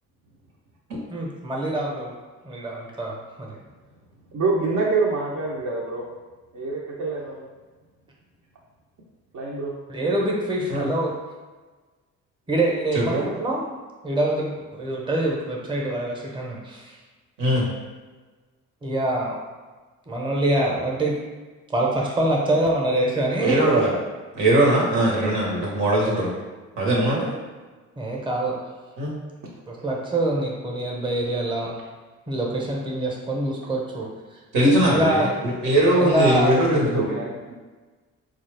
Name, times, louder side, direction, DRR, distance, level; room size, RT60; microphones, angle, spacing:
voice 1, 1.1-2.1 2.4-3.6 9.9-11.2 12.5-13.6 14.0-17.0 18.8-19.4 20.1-21.1 21.7-23.6 28.0-28.6 29.6-31.8 32.3-34.1 34.9-35.4 36.0-36.7, right 1 dB, 15° right, -2 dB, 0.8 m, -25 dB
voice 2, 4.3-6.0 6.5-7.5 9.3-9.7 36.8-37.5, right 3 dB, 65° right, -5 dB, 0.7 m, -26 dB
voice 3, 23.4-23.9 24.3-26.3 26.8-27.4 29.0-29.1 34.5-35.2 35.6-37.1, right 1 dB, 90° right, -3 dB, 1.2 m, -20 dB
4.0 x 2.4 x 3.3 m, 1.3 s
cardioid pair, 90°, 30 cm